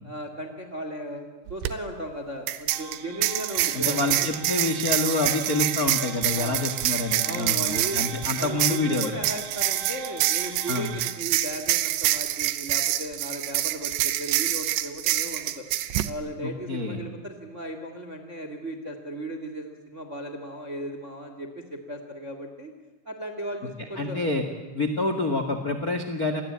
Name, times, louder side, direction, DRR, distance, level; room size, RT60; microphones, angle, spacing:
voice 1, 0.0-4.3 6.3-6.6 7.2-15.6 16.0-22.7 23.0-24.2, right 1 dB, 30° right, 7 dB, 1.4 m, -36 dB
sound 1, 1.5-1.7 2.5-16.1, right 14 dB, 80° right, 3.2 m, -26 dB
sound 2, 2.7-11.1, right 7 dB, 65° right, 2.2 m, -42 dB
voice 2, 3.7-9.1 10.7-10.9 16.4-17.0 24.0-24.4 24.7-26.4, left 3 dB, 55° left, 7 dB, 1.0 m, -27 dB
29.0 x 21.0 x 8.8 m, 1.2 s
omnidirectional pair, 5.1 m